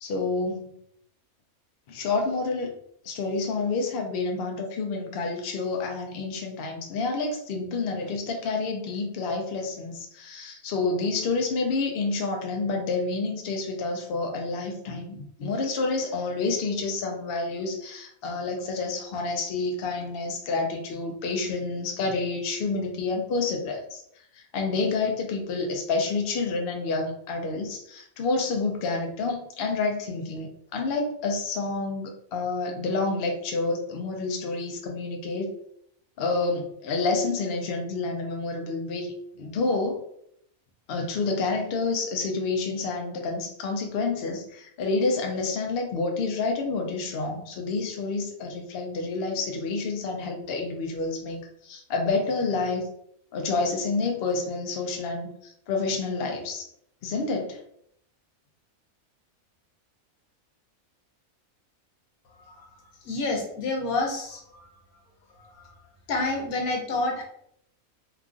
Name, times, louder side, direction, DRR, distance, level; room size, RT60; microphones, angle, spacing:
voice 1, 0.0-0.7 1.9-2.7 3.0-24.0 24.4-35.5 36.2-39.1 39.4-40.0 40.9-52.9 53.3-56.7 57.0-57.6, left 3 dB, 60° left, 2 dB, 0.6 m, -29 dB
voice 2, 63.0-64.7 65.5-65.7 66.1-67.2, left 2 dB, 85° left, 0 dB, 1.2 m, -28 dB
2.9 x 2.4 x 2.4 m, 0.70 s
omnidirectional pair, 1.5 m